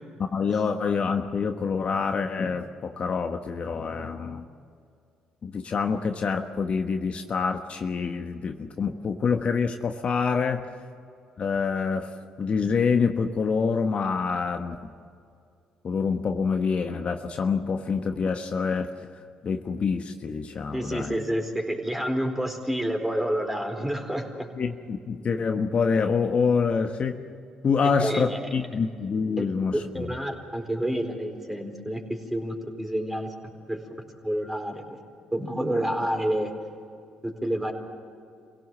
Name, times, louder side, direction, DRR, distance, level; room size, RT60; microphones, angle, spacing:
voice 1, 0.2-4.5 5.4-10.7 11.4-14.8 15.8-18.9 19.4-21.2 24.5-27.2 27.6-30.1, left 5 dB, 50° left, 5 dB, 1.3 m, -26 dB
voice 2, 20.7-24.5 28.0-28.4 29.4-29.5 29.7-33.3 33.7-33.8 34.2-35.0 35.3-36.5 37.2-37.7, right 1 dB, 10° right, 3 dB, 4.3 m, -29 dB
26.0 x 17.0 x 7.6 m, 2.3 s
hypercardioid pair, 55°, 3 cm